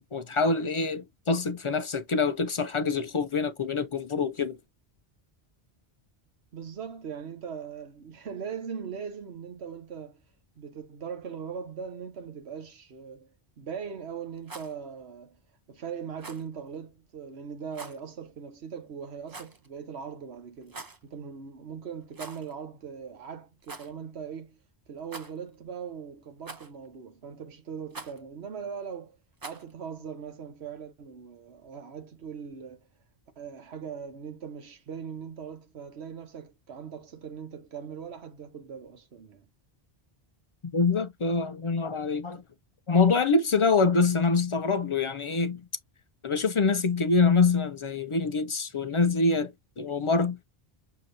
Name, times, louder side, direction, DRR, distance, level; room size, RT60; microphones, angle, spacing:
voice 1, 0.0-4.6 40.7-42.4 42.9-45.6 46.2-50.4, left 4 dB, 45° left, 0.4 m, -25 dB
voice 2, 6.5-10.2 10.6-15.4 15.7-24.6 24.9-29.2 29.4-32.9 33.4-39.5, right 7 dB, 90° right, 1.3 m, -40 dB
Rattle, 14.3-14.7 16.2-16.5 17.7-18.0 19.3-19.7 20.6-21.0 22.1-22.5 22.8-22.9 23.6-23.9 25.0-25.5 26.4-26.9 27.9-28.2 29.4-29.7, right 3 dB, 25° right, 0.5 m, -43 dB
6.2 x 2.8 x 2.5 m
omnidirectional pair, 1.1 m